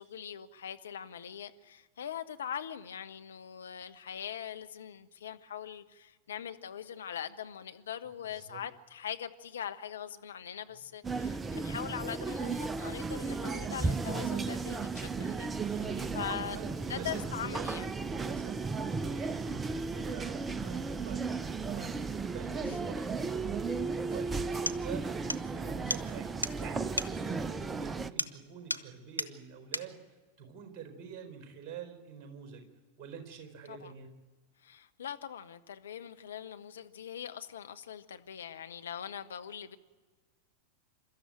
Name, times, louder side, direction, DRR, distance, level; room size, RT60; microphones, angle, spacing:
voice 1, 0.0-15.8 16.1-16.6 16.9-17.9 22.6-22.8 33.7-33.9 34.6-39.8, left 9 dB, 65° left, 1.0 m, -42 dB
voice 2, 8.2-8.6 15.2-30.0 30.4-32.7 33.0-34.1, right 6 dB, 35° right, 4.4 m, -46 dB
sound 1, 11.0-28.1, right 4 dB, 15° right, 0.6 m, -35 dB
sound 2, 24.1-24.2 24.7-24.8 25.3-25.5 25.9-26.0 26.4-26.6 27.0-27.1 28.2-28.4 28.7-28.9 29.2-29.3 29.7-29.9, left 1 dB, 90° right, 0.8 m, -34 dB
28.0 x 13.0 x 9.2 m
figure-of-eight pair, 90°, 0 cm